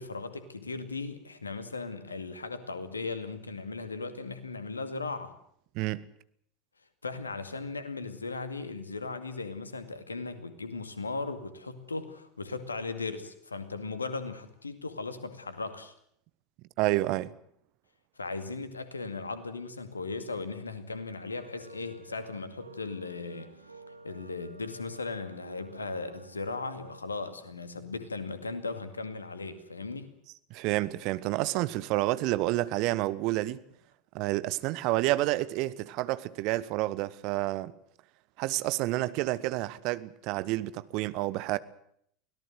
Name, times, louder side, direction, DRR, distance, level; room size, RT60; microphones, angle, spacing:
voice 1, 0.0-5.3 7.0-15.9 18.2-23.5 24.0-30.1, left 3 dB, 80° left, 2.2 m, -37 dB
voice 2, 5.7-6.0 16.8-17.3 30.5-33.6 34.1-37.7 38.4-41.6, right 18 dB, 50° right, 1.1 m, -29 dB
sound 1, 21.1-27.0, right 3 dB, 80° right, 1.3 m, -51 dB
24.0 x 18.0 x 7.8 m
figure-of-eight pair, 80°, 0 cm